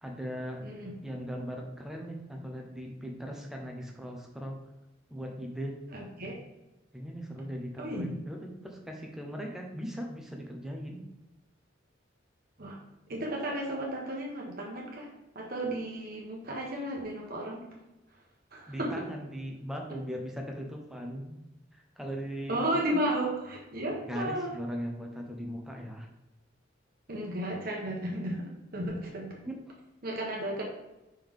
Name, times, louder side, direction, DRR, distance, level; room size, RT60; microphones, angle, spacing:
voice 1, 0.0-0.6 1.0-4.6 5.1-5.8 6.9-11.0 18.7-21.4 21.7-23.0 24.1-26.1 29.4-29.7 30.5-30.6, equal, ahead, 1 dB, 1.0 m, -39 dB
voice 2, 0.6-0.9 5.9-6.3 7.8-8.0 12.6-12.8 13.1-15.1 15.3-17.7 18.5-19.0 22.5-24.6 27.1-29.4 30.0-30.6, right 1 dB, 50° right, -1 dB, 1.1 m, -34 dB
5.6 x 5.4 x 3.7 m, 0.99 s
head